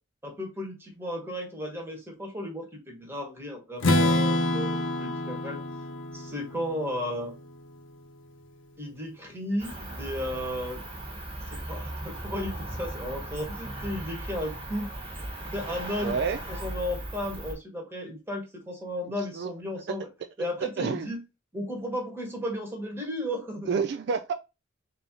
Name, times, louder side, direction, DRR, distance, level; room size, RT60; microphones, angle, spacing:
voice 1, 0.2-5.6 6.1-7.3 8.8-10.8 11.5-14.9 15.5-16.1 16.5-20.1 20.4-21.2 21.5-23.8, equal, 10° right, 1.4 m, -34 dB
Strum, 3.8-7.8, left 1 dB, 85° left, 0.8 m, -27 dB
Cricket, 9.6-17.5, right 1 dB, 30° right, 1.3 m, -37 dB
voice 2, 16.0-16.4 19.2-19.5 20.8-21.1 23.7-24.3, right 5 dB, 55° right, 0.3 m, -28 dB
3.9 x 2.8 x 3.7 m
head